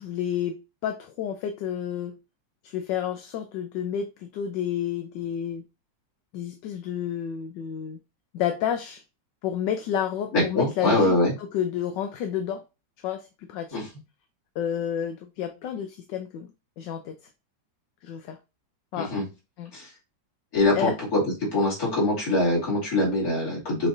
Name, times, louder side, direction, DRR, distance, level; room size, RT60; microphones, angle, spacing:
voice 1, 0.0-2.1 2.6-5.6 6.3-8.0 8.3-9.0 9.4-12.6 13.0-13.8 14.6-16.5 16.8-17.2 18.0-18.4 18.9-19.1 19.6-19.7 20.7-20.9, left 9 dB, 75° left, 1.2 m, -30 dB
voice 2, 10.3-11.3 13.7-13.8 19.0-19.2 19.7-19.9 20.5-21.2 21.5-23.9, left 2 dB, 50° left, 3.0 m, -23 dB
6.3 x 3.1 x 2.6 m
omnidirectional pair, 2.1 m